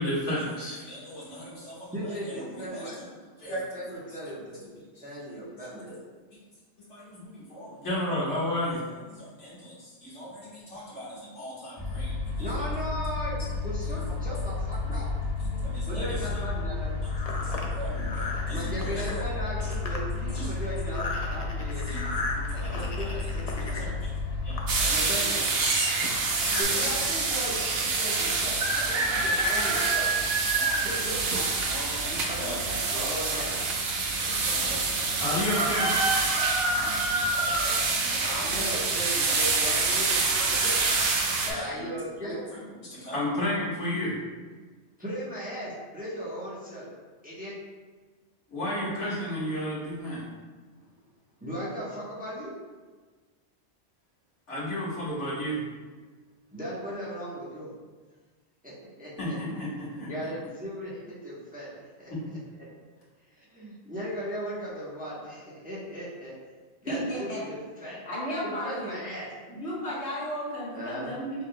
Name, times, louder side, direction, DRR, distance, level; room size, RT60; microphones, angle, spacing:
voice 1, 0.0-2.8 3.4-3.6 4.9-5.0 6.9-12.5 13.4-13.5 13.9-14.0 14.8-15.0 15.6-16.4 17.4-19.3 20.3-20.5 21.0-21.1 21.9-22.0 22.3-23.1 23.7-24.1 24.4-25.3 26.0-26.9 28.8-29.3 30.5-30.9 31.3-32.6 32.9-33.1 34.1-38.6 39.9-40.0 40.3-40.4 41.2-41.9 42.2-44.1 48.5-50.2 54.5-55.6 59.2-60.1 62.1-62.2, left 1 dB, 85° left, -9 dB, 2.1 m, -35 dB
voice 2, 1.9-3.0 3.3-3.4 3.7-4.6 5.0-6.0 10.3-10.4 12.4-15.1 15.8-17.0 18.5-21.9 22.5-24.0 24.9-25.6 26.6-30.1 30.8-31.2 32.2-33.7 38.2-40.8 41.4-42.4 45.0-46.9 47.2-47.6 51.4-52.6 56.5-57.7 58.6-59.4 60.1-61.7 62.0-62.1 62.5-62.7 63.4-66.3 66.8-68.0 68.4-69.3 70.7-71.1, equal, 10° right, -8 dB, 0.9 m, -37 dB
sound 1, 11.8-24.9, left 3 dB, 25° left, 1.5 m, -32 dB
sound 2, 16.0-26.6, left 2 dB, 45° left, 0.5 m, -38 dB
sound 3, 24.7-41.5, right 3 dB, 65° right, 0.9 m, -26 dB
voice 3, 66.9-67.4 68.1-69.0 69.5-71.4, equal, 65° left, -6 dB, 1.5 m, -33 dB
6.3 x 3.7 x 2.2 m, 1.4 s
omnidirectional pair, 1.2 m